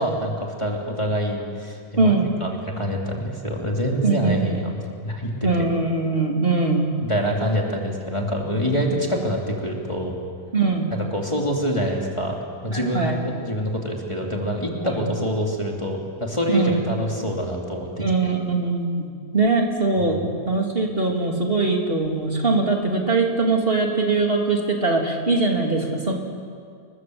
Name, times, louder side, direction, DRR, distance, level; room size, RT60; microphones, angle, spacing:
voice 1, 0.0-4.7 5.0-5.7 7.0-10.1 11.1-12.4 12.6-18.0 20.0-20.3, equal, 20° left, -1 dB, 3.0 m, -26 dB
voice 2, 2.0-2.3 4.0-4.6 5.4-6.9 8.9-9.0 10.5-10.9 12.7-13.2 14.8-15.1 16.5-16.8 18.0-19.1 19.3-26.1, right 3 dB, 35° right, 0 dB, 3.3 m, -22 dB
29.0 x 22.5 x 7.9 m, 2.2 s
omnidirectional pair, 1.6 m